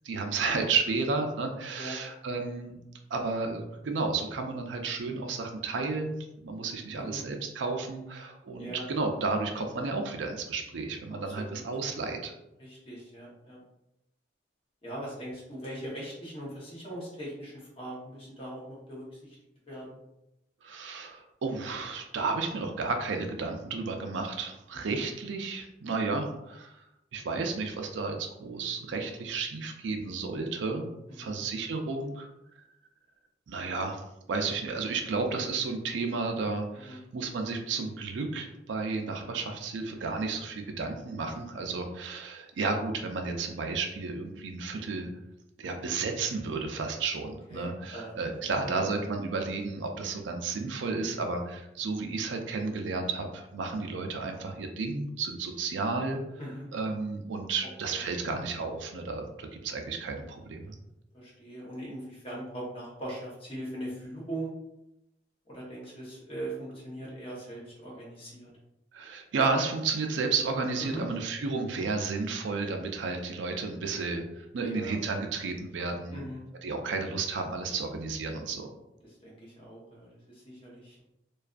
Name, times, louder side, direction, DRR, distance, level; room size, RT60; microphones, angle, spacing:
voice 1, 0.0-2.8 3.1-6.2 6.4-12.3 20.6-26.8 27.1-32.3 33.5-34.0 34.3-45.1 45.6-56.2 56.7-60.7 68.9-76.3 76.6-78.7, right 4 dB, 85° right, 4 dB, 0.4 m, -32 dB
voice 2, 11.3-11.7 12.6-13.6 14.8-19.4 19.7-19.9 24.9-25.0 31.1-31.3 36.8-37.0 45.6-45.9 47.5-48.8 56.4-56.7 57.9-58.0 59.7-59.9 61.1-64.5 65.5-68.5 70.8-71.0 74.6-75.0 76.1-76.4 79.2-81.2, right 1 dB, 30° left, -5 dB, 0.9 m, -41 dB
2.5 x 2.3 x 2.3 m, 0.87 s
head